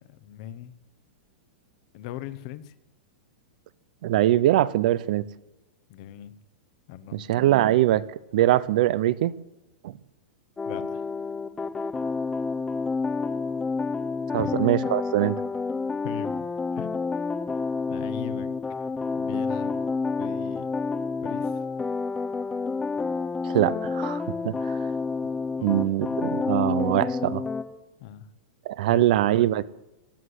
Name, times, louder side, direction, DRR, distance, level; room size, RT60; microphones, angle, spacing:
voice 1, 0.1-0.7 1.9-2.7 5.9-6.3 6.9-7.3 10.7-11.1 14.3-14.7 16.0-16.5 16.7-17.0 17.9-18.5 19.1-19.8 20.2-20.7 21.2-21.6 25.6-25.7 28.0-28.3 28.9-29.1, left 11 dB, 35° left, 0.9 m, -39 dB
voice 2, 4.0-5.3 7.1-8.0 8.3-9.3 9.8-9.9 14.3-15.4 23.4-24.8 25.6-27.4 28.7-29.6, right 13 dB, 45° right, 0.5 m, -22 dB
sound 1, 10.6-27.6, left 4 dB, 10° left, 0.8 m, -29 dB
16.0 x 9.7 x 8.0 m
supercardioid pair, 175°, 6 cm